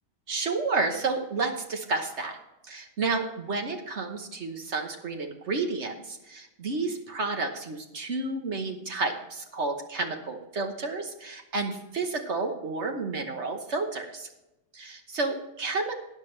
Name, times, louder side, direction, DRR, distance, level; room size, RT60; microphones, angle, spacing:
voice 1, 0.3-2.4 2.6-14.3 14.7-15.9, right 3 dB, 70° right, 4 dB, 1.4 m, -31 dB
13.5 x 9.9 x 3.3 m, 0.93 s
omnidirectional pair, 1.2 m